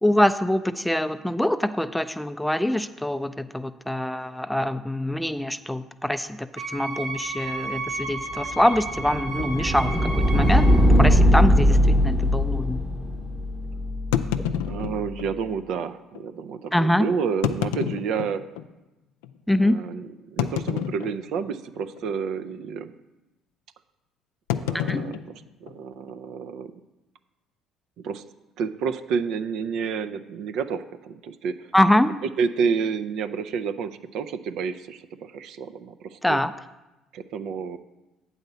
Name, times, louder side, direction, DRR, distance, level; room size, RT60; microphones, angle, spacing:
voice 1, 0.0-12.8 16.7-17.1 19.5-19.8 24.7-25.1 31.7-32.2 36.2-36.5, left 1 dB, 5° left, 11 dB, 0.4 m, -24 dB
Wind instrument woodwind instrument, 6.6-10.8, right 3 dB, 90° right, 2.8 m, -33 dB
sound 1, 8.0-14.9, equal, 15° right, 0.8 m, -21 dB
sound 2, 9.4-9.6 10.3-10.4 10.7-10.8 11.4-11.5 14.1-15.3 16.1-16.2 17.3-18.7 19.2-19.3 20.4-21.5 21.8-22.1 22.4-22.7 24.5-26.1, left 10 dB, 90° left, 0.3 m, -29 dB
voice 2, 14.7-18.4 19.6-22.9 24.6-26.7 28.0-28.2 28.6-31.7 32.4-36.4 37.1-37.8, right 6 dB, 70° right, 11 dB, 0.4 m, -30 dB
8.0 x 4.2 x 6.7 m, 1.0 s
supercardioid pair, 75°, 0 cm